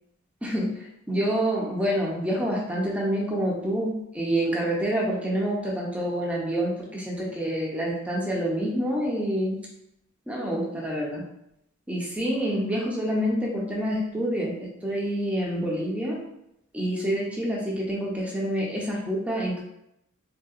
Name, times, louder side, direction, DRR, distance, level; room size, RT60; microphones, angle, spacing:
voice 1, 0.4-9.6 10.3-11.2 11.9-16.2 16.7-19.6, equal, 5° right, -3 dB, 0.5 m, -27 dB
3.5 x 2.7 x 2.4 m, 0.80 s
head